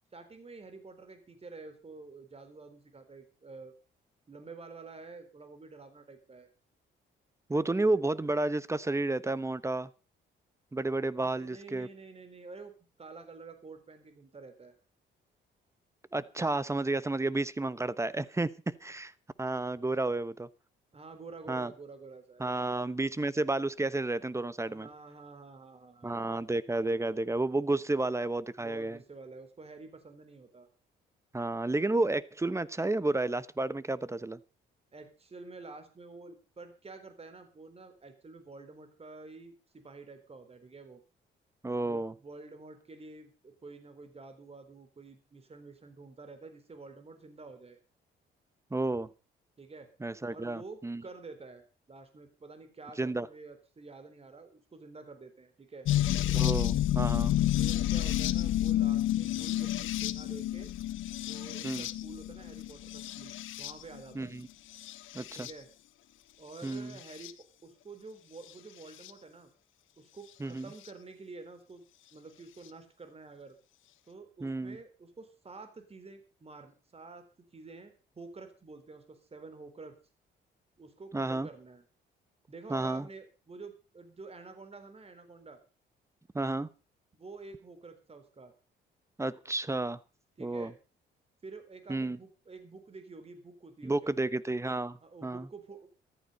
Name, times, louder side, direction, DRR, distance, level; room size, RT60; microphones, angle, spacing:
voice 1, 0.1-3.7 4.3-6.5 11.1-12.7 13.0-14.8 20.9-22.8 24.7-26.2 28.6-30.7 34.9-41.0 41.8-47.8 49.6-49.9 50.3-55.9 57.6-60.7 61.2-64.3 65.3-65.7 66.4-67.3 67.6-69.5 70.0-71.8 72.1-73.6 74.1-77.2 77.5-80.0 80.8-81.8 82.5-85.6 87.1-88.5 90.4-90.8 91.4-94.3 95.0-95.9, right 3 dB, 30° right, 3.9 m, -49 dB
voice 2, 7.5-9.9 10.7-11.9 16.1-19.1 19.4-20.5 21.5-21.7 22.4-24.9 26.0-29.0 31.3-34.4 41.6-42.1 48.7-49.1 50.0-51.0 53.0-53.3 56.3-57.3 61.6-61.9 64.1-64.5 65.1-65.5 66.6-67.0 70.4-70.7 74.4-74.8 81.1-81.5 82.7-83.1 86.3-86.7 89.2-90.0 90.4-90.7 91.9-92.2 93.8-95.5, right 2 dB, 15° right, 1.0 m, -31 dB
sound 1, 55.8-64.0 64.7-65.5 66.7-67.3 69.0-69.1 70.8-70.9, left 13 dB, 85° left, 1.2 m, -30 dB
14.5 x 13.5 x 5.5 m
cardioid pair, 90°, 20 cm